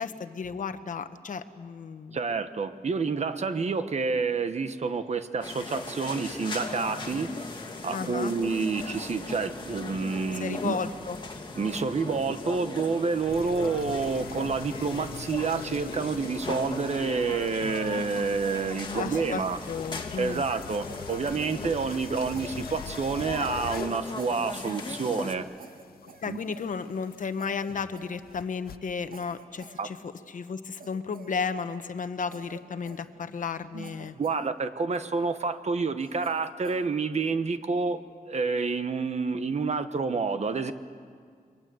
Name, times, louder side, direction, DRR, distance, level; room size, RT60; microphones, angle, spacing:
voice 1, 0.0-2.2 7.9-8.3 10.3-11.2 18.9-20.4 26.0-34.1, left 5 dB, 60° left, 10 dB, 1.1 m, -34 dB
voice 2, 2.1-10.8 11.6-19.6 20.2-25.5 26.3-26.4 29.8-29.9 33.7-38.0 38.3-40.7, right 4 dB, 50° right, 10 dB, 1.1 m, -29 dB
sound 1, 5.4-25.4, left 3 dB, 30° left, 1.9 m, -38 dB
sound 2, 13.1-28.8, left 8 dB, 90° left, 0.7 m, -45 dB
Cough, 20.7-22.1 22.3-23.6 24.1-24.9 25.2-25.3 25.6-27.1 27.4-27.7 27.9-28.6 29.1-30.3 30.8-31.9 32.3-33.5 33.8-34.5 34.9-35.5 36.0-36.9, right 5 dB, 75° right, 1.7 m, -51 dB
29.0 x 23.5 x 7.8 m, 2.1 s
wide cardioid pair, 160°, 15 cm